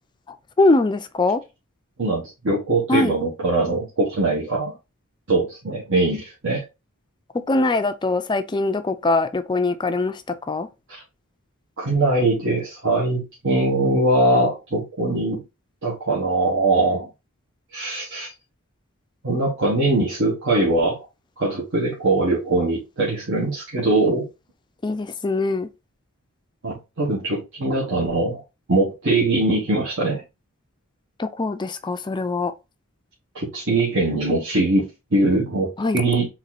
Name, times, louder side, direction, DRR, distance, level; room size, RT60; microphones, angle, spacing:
voice 1, 0.6-1.4 2.9-3.2 7.3-10.7 24.8-25.7 31.2-32.5 35.8-36.0, left 2 dB, 20° left, 0.4 m, -22 dB
voice 2, 2.0-4.7 5.3-6.6 10.9-11.0 11.8-15.4 15.8-17.1 17.7-18.3 19.2-21.0 21.4-24.3 26.6-28.4 28.7-30.2 33.3-36.3, right 2 dB, 65° right, 1.6 m, -22 dB
4.2 x 3.0 x 4.0 m
head